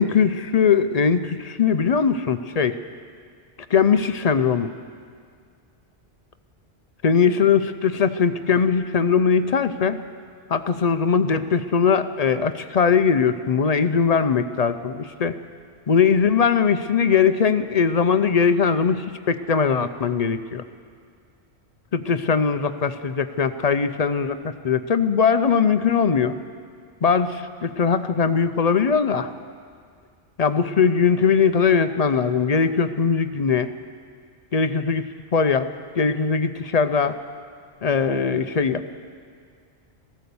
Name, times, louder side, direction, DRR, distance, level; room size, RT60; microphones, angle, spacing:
voice 1, 0.0-2.8 3.7-4.7 7.0-10.0 10.5-15.3 15.9-20.6 21.9-26.4 27.0-29.3 30.4-33.7 34.5-35.7 36.0-37.2 37.8-38.8, left 6 dB, 45° left, 10 dB, 0.6 m, -20 dB
15.0 x 13.5 x 7.0 m, 2.1 s
omnidirectional pair, 1.1 m